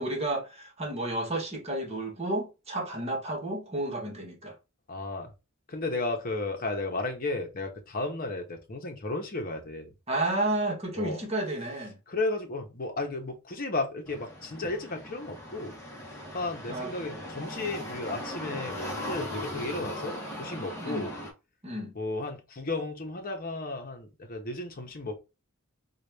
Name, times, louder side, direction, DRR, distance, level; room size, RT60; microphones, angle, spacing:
voice 1, 0.0-4.5 10.1-12.0 16.7-16.9 20.8-21.1 21.6-21.9, right 2 dB, 30° right, 1.2 m, -31 dB
voice 2, 4.9-5.3 5.7-9.9 11.0-11.2 12.1-15.8 16.3-21.1 21.9-25.2, left 2 dB, 40° left, 0.9 m, -34 dB
sound 1, 14.0-21.3, left 1 dB, 10° left, 1.0 m, -39 dB
4.0 x 2.4 x 3.3 m
head